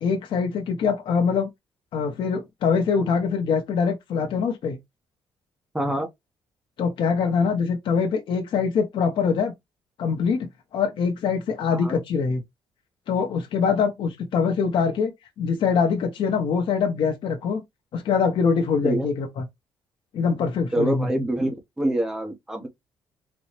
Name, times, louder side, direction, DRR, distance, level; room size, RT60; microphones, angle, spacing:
voice 1, 0.0-1.5 1.9-4.8 6.8-9.5 10.0-12.4 13.1-15.1 15.4-17.6 17.9-19.4 20.1-21.1, left 5 dB, 70° left, 0.9 m, -23 dB
voice 2, 5.7-6.1 11.7-12.0 18.8-19.1 20.7-22.7, right 1 dB, 5° right, 1.0 m, -26 dB
4.1 x 2.3 x 3.2 m
cardioid pair, 90°, 9 cm